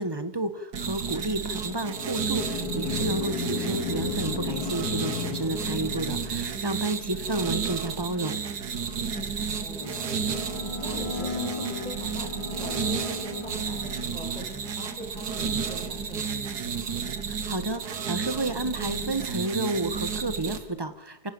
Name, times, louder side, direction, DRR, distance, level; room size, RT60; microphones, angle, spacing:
voice 1, 0.0-8.4 17.3-21.3, right 2 dB, 15° right, 11 dB, 1.5 m, -31 dB
sound 1, 0.7-20.6, right 6 dB, 85° right, 1.9 m, -32 dB
sound 2, 1.6-6.6, left 5 dB, 70° left, 2.1 m, -34 dB
voice 2, 9.0-12.3 12.6-16.6, equal, 5° left, 1 dB, 6.0 m, -42 dB
sound 3, 9.8-14.4, left 3 dB, 25° left, 1.0 m, -37 dB
28.5 x 18.0 x 7.2 m, 0.90 s
omnidirectional pair, 1.7 m